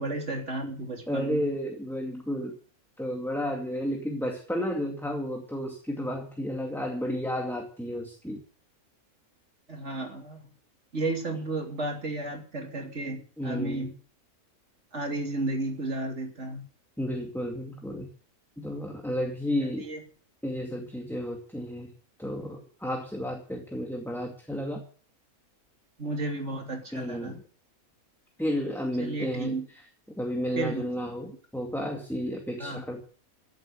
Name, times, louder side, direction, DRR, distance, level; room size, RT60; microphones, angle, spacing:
voice 1, 0.0-1.4 9.7-10.4 10.9-13.9 14.9-16.6 19.8-20.0 26.0-27.4 29.0-29.7 30.6-30.9 32.6-32.8, right 2 dB, 50° right, 2 dB, 3.5 m, -33 dB
voice 2, 1.1-2.6 3.0-8.4 13.4-13.9 17.0-18.1 18.6-19.9 20.4-21.9 22.2-24.8 26.9-27.4 28.4-29.6 30.2-33.0, equal, ahead, 2 dB, 2.3 m, -32 dB
15.5 x 7.8 x 9.0 m, 0.43 s
omnidirectional pair, 1.5 m